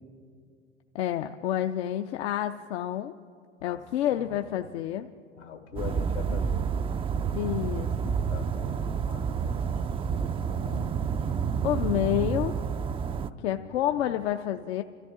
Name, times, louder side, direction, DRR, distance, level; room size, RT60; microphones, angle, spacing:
voice 1, 0.9-3.1 3.6-5.1 7.3-8.2 11.6-12.5 13.4-14.8, left 12 dB, 70° left, 6 dB, 0.6 m, -29 dB
voice 2, 4.1-4.7 5.4-6.7 8.3-10.9 13.2-14.1, left 7 dB, 85° left, 5 dB, 1.9 m, -43 dB
sound 1, 5.8-13.3, right 6 dB, 15° right, 0.3 m, -29 dB
27.0 x 13.5 x 3.7 m, 2.2 s
hypercardioid pair, 85°, 34 cm